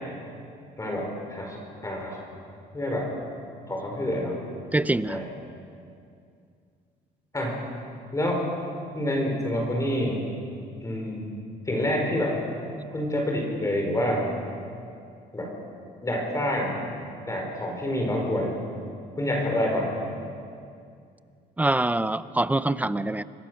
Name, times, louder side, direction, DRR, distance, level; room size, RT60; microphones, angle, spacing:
voice 1, 0.8-2.2 2.7-3.1 3.7-4.4 5.1-5.3 7.3-7.6 8.1-8.4 8.9-10.2 10.8-11.3 11.7-12.4 12.9-14.3 15.3-15.5 16.0-16.7 17.3-18.5 19.2-20.0, left 1 dB, 20° left, 0 dB, 5.1 m, -27 dB
voice 2, 4.7-5.2 21.6-23.2, right 2 dB, 10° right, 15 dB, 0.6 m, -24 dB
27.0 x 21.0 x 6.5 m, 2.4 s
cardioid pair, 110°, 17 cm